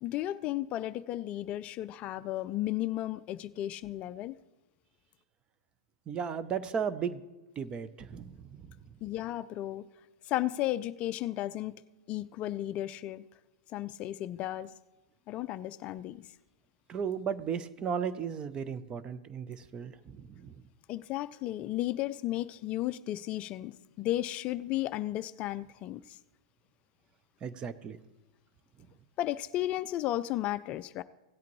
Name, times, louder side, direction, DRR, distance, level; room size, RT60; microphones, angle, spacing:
voice 1, 0.0-4.4 9.0-9.9 10.3-11.7 12.1-13.2 13.7-14.7 15.3-16.2 20.9-26.2 29.2-31.0, left 14 dB, 35° left, 14 dB, 0.3 m, -34 dB
voice 2, 6.1-7.2 7.6-8.7 16.9-20.6 27.4-28.0, right 7 dB, 25° right, 14 dB, 0.6 m, -35 dB
16.5 x 8.2 x 3.1 m, 1.1 s
hypercardioid pair, 110°, 4 cm